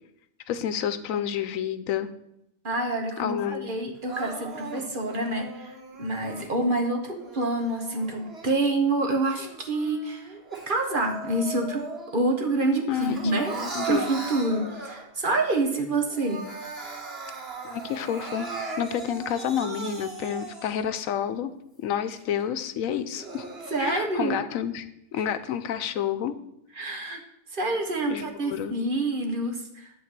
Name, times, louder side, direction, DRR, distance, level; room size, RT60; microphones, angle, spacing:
voice 1, 0.5-2.1 3.2-3.7 12.9-13.2 13.5-14.0 17.6-18.5 18.8-21.5 21.8-23.4 23.8-24.9 25.1-26.3 28.0-28.7, left 9 dB, 85° left, 11 dB, 1.1 m, -29 dB
voice 2, 2.6-5.7 6.0-10.3 10.7-11.8 12.1-13.6 13.8-16.4 23.7-24.4 26.8-27.2 27.5-29.9, right 2 dB, 40° right, 4 dB, 1.3 m, -27 dB
Crying sobbing, 4.1-6.5 7.1-8.9 9.4-12.3 12.6-15.3 15.7-15.8 16.1-20.9 21.4-21.5 22.1-22.2 22.9-23.9, right 3 dB, ahead, 3.0 m, -38 dB
11.0 x 3.9 x 7.4 m, 0.81 s
omnidirectional pair, 1.4 m